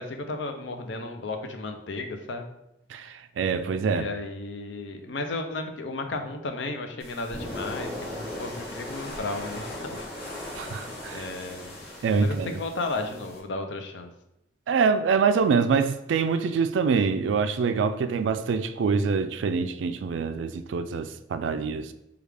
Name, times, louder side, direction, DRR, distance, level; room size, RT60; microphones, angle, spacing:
voice 1, 0.0-2.5 3.9-10.1 11.1-11.7 12.2-14.1, left 2 dB, 75° left, 0.6 m, -34 dB
voice 2, 2.9-4.1 10.6-11.2 12.0-12.5 14.7-21.9, right 5 dB, 85° right, 0.3 m, -25 dB
sound 1, 7.0-13.4, left 1 dB, 60° left, 1.4 m, -38 dB
4.8 x 2.4 x 3.4 m
head